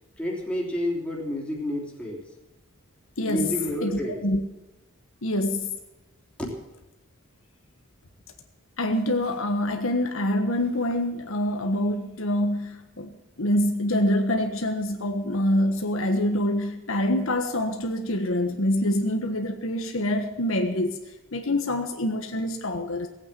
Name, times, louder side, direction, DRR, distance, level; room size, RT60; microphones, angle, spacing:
voice 1, 0.2-2.3 3.3-4.2 6.4-6.6, equal, 5° left, -3 dB, 3.2 m, -30 dB
voice 2, 3.8-4.4 5.2-5.7 8.8-20.9 21.3-23.1, left 1 dB, 60° left, 4 dB, 1.3 m, -25 dB
17.5 x 8.8 x 7.5 m, 1.0 s
head